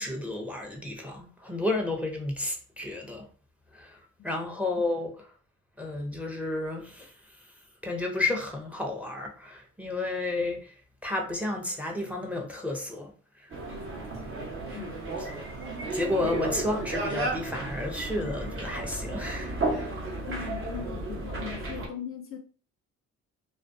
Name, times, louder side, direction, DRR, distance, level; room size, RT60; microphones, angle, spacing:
voice 1, 0.0-3.3 3.7-5.3 5.8-7.5 7.8-10.7 11.0-13.1 13.4-13.5 15.3-15.5 15.9-19.6, left 2 dB, 5° right, 0.6 m, -32 dB
sound 1, 13.5-21.9, right 2 dB, 45° right, 0.9 m, -33 dB
voice 2, 14.7-15.0 20.3-22.4, left 10 dB, 45° left, 0.4 m, -40 dB
2.4 x 2.2 x 2.5 m
cardioid pair, 90°, 30 cm